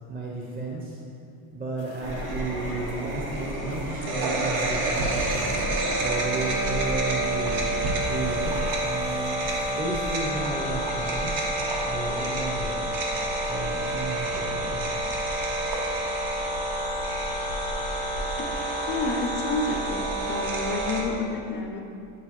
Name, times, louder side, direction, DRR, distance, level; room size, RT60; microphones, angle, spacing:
voice 1, 0.1-1.0 1.5-7.6 8.0-9.4 9.7-11.4 11.8-12.9 13.4-14.8, right 2 dB, 25° right, -3 dB, 0.7 m, -33 dB
sound 1, 1.8-9.8, left 4 dB, 80° left, 0.8 m, -44 dB
sound 2, 2.0-21.0, right 1 dB, 70° right, 1.1 m, -28 dB
voice 2, 18.9-21.8, left 3 dB, 30° left, 2 dB, 0.4 m, -30 dB
8.4 x 3.8 x 3.0 m, 2.5 s
supercardioid pair, 110°, 38 cm